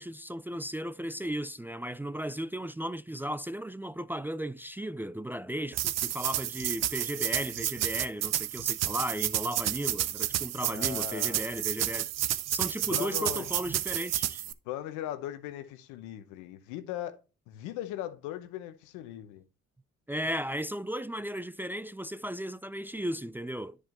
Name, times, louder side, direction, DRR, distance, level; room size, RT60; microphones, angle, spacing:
voice 1, 0.0-12.1 12.5-14.4 20.1-23.8, equal, 5° right, 0.4 m, -35 dB
sound 1, 5.7-14.5, right 13 dB, 60° right, 0.7 m, -31 dB
voice 2, 10.7-11.5 12.9-13.5 14.6-17.2 17.5-19.4, left 12 dB, 80° left, 0.9 m, -39 dB
10.5 x 4.8 x 3.0 m
hypercardioid pair, 55°, 29 cm